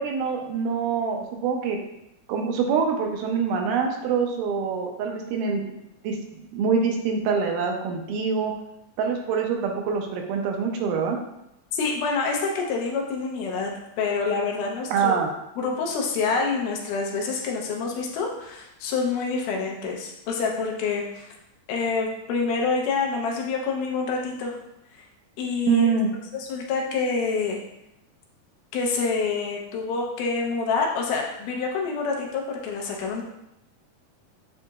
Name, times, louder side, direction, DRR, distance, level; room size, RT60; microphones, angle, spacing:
voice 1, 0.0-1.8 2.3-5.8 6.0-8.5 9.0-11.2 14.9-15.3 25.7-26.1, right 5 dB, 85° right, 2 dB, 2.2 m, -25 dB
voice 2, 11.7-15.2 15.6-21.3 21.7-24.6 24.9-25.0 25.4-25.9 26.3-27.6 28.7-33.2, left 4 dB, 80° left, 0 dB, 2.2 m, -27 dB
7.9 x 2.8 x 2.3 m, 0.85 s
omnidirectional pair, 3.8 m